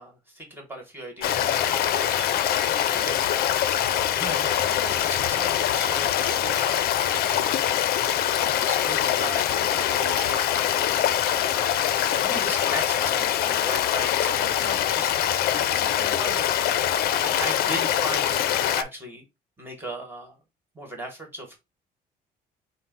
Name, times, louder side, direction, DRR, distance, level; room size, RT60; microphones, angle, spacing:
voice 1, 0.0-3.2 3.9-11.2 12.1-15.1 15.5-16.4 16.7-19.2 19.6-20.4 20.7-21.6, right 1 dB, 10° right, 1.6 m, -38 dB
Stream, 1.2-18.8, left 10 dB, 65° left, 0.5 m, -24 dB
5.3 x 2.0 x 3.9 m
cardioid pair, 110°, 17 cm